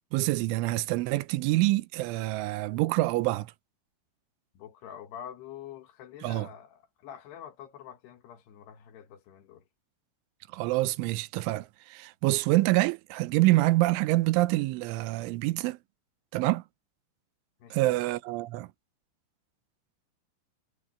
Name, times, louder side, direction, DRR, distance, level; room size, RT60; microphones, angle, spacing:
voice 1, 0.1-3.5 6.2-6.5 10.5-15.8 16.3-16.6 17.7-18.7, right 19 dB, 85° right, 3.2 m, -26 dB
voice 2, 4.5-9.7 17.6-17.9, left 9 dB, 65° left, 3.3 m, -46 dB
omnidirectional pair, 5.4 m